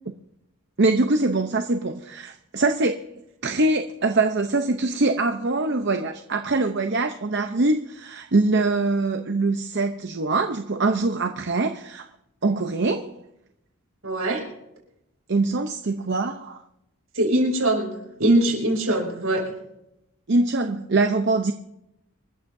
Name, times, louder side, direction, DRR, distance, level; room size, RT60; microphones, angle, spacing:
voice 1, 0.8-2.9 3.4-12.0 12.4-13.2 15.3-16.6 20.3-21.5, right 3 dB, 50° right, 6 dB, 0.7 m, -23 dB
voice 2, 14.0-14.4 17.1-19.4, right 1 dB, 70° right, 0 dB, 6.2 m, -22 dB
27.5 x 14.0 x 2.7 m, 0.86 s
head